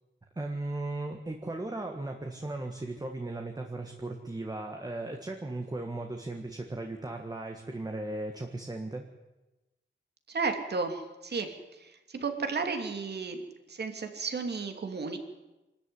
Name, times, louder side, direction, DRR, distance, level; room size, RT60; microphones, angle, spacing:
voice 1, 0.3-9.0, right 2 dB, 20° right, 3 dB, 1.6 m, -37 dB
voice 2, 10.3-13.4 13.7-15.2, right 4 dB, 55° right, 6 dB, 2.7 m, -33 dB
26.0 x 13.5 x 9.8 m, 1.1 s
wide cardioid pair, 175°, 20 cm